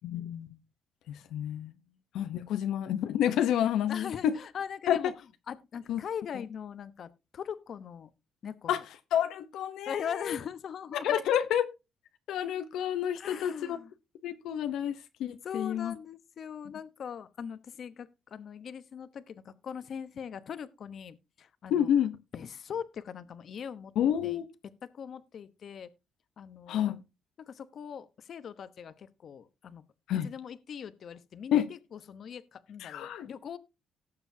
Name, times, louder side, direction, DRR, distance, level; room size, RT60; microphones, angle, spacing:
voice 1, 0.0-0.5 1.1-1.7 2.1-4.3 4.9-5.1 5.9-6.0 8.7-8.8 9.1-10.4 11.0-11.7 12.3-13.8 14.2-15.9 21.7-22.1 24.0-24.4 26.7-27.0 30.1-30.3 31.5-31.7 32.8-33.3, left 10 dB, 85° left, 0.8 m, -29 dB
voice 2, 1.2-2.0 3.9-5.1 5.5-8.1 8.4-8.8 9.9-11.2 13.1-13.9 15.4-21.9 22.3-23.9 24.2-24.4 24.9-25.9 26.4-27.0 27.4-29.8 30.2-33.6, left 7 dB, 60° left, 1.0 m, -41 dB
18.0 x 6.9 x 2.8 m
cardioid pair, 90°, 0 cm